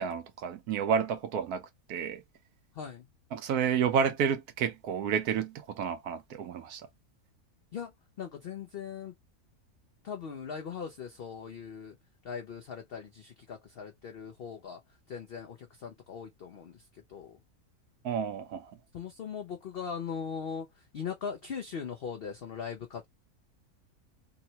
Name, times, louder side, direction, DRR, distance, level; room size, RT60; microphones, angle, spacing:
voice 1, 0.0-2.2 3.3-6.8 18.0-18.7, right 7 dB, 80° right, 1.2 m, -30 dB
voice 2, 2.7-3.1 7.7-9.1 10.0-12.0 12.2-14.8 15.1-17.4 18.9-23.1, left 6 dB, 60° left, 0.6 m, -40 dB
3.6 x 2.1 x 2.7 m
omnidirectional pair, 1.6 m